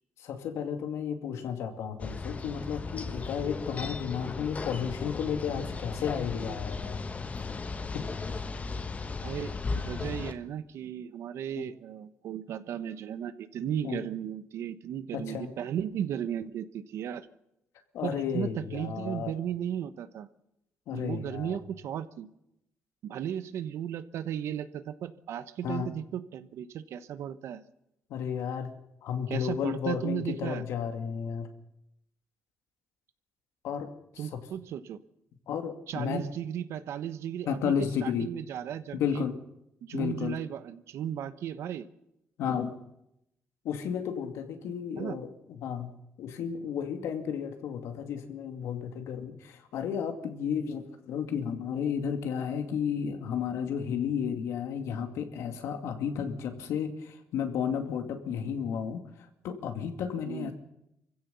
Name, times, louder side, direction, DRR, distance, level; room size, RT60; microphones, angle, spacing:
voice 1, 0.2-7.0 7.9-8.1 11.6-11.7 13.8-14.0 15.1-15.5 17.9-19.3 20.9-21.6 25.6-25.9 28.1-28.7 29.0-31.5 33.6-33.9 34.3-34.4 35.5-36.2 37.5-38.3 38.9-39.3 39.9-40.4 42.4-42.8 43.6-45.3 45.6-45.9 46.2-59.0 59.4-60.5, left 7 dB, 85° left, 6 dB, 2.3 m, -33 dB
sound 1, 2.0-10.3, left 4 dB, 30° left, 1.3 m, -36 dB
voice 2, 9.2-17.3 18.0-20.3 20.9-22.3 23.0-27.6 29.3-30.7 34.2-35.0 35.9-39.2 39.8-41.8 45.0-45.2 60.2-60.5, right 9 dB, 75° right, 13 dB, 1.1 m, -35 dB
24.5 x 15.5 x 7.0 m, 0.84 s
cardioid pair, 95°, 5 cm